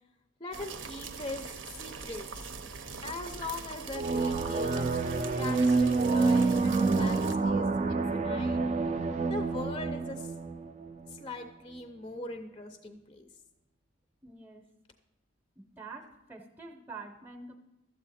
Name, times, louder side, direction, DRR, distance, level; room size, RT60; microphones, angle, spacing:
voice 1, 0.4-1.5 1.7-2.5 3.0-8.6 9.3-10.3 11.1-13.3, left 2 dB, 25° left, 7 dB, 0.5 m, -41 dB
sound 1, 0.5-7.3, right 5 dB, 65° right, 0.7 m, -42 dB
sound 2, 3.9-11.3, right 3 dB, 35° right, 0.4 m, -28 dB
voice 2, 14.2-14.6 15.6-17.5, right 4 dB, 10° right, 4 dB, 0.8 m, -46 dB
12.5 x 8.0 x 4.2 m, 1.0 s
head